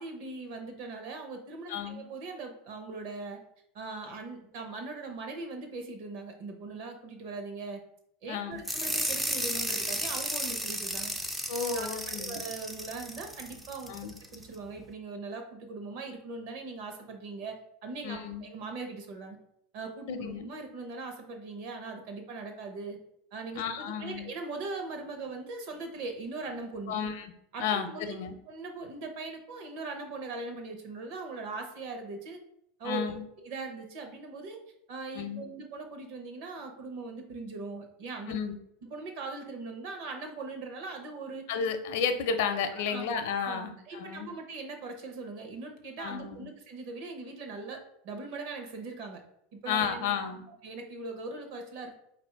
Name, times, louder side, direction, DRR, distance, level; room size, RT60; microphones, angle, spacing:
voice 1, 0.0-3.4 3.7-7.8 8.2-11.1 11.7-13.9 14.3-19.4 19.7-23.0 23.3-26.9 27.5-28.2 28.5-32.4 32.8-33.1 33.4-34.6 34.9-38.4 38.9-41.4 42.9-43.0 43.4-49.2 49.5-50.1 50.6-51.9, right 3 dB, 50° right, 4 dB, 0.9 m, -40 dB
voice 2, 1.7-2.0 8.3-8.6 11.5-12.4 13.9-14.1 18.0-18.5 20.1-20.5 23.6-24.3 26.9-27.3 27.6-28.3 32.8-33.2 35.1-35.4 38.3-38.5 41.5-44.3 46.0-46.5 49.7-50.4, left 6 dB, 65° left, 8 dB, 0.5 m, -32 dB
sound 1, 8.6-14.4, right 1 dB, 5° right, 0.3 m, -34 dB
4.6 x 2.6 x 4.5 m, 0.74 s
supercardioid pair, 170°, 0 cm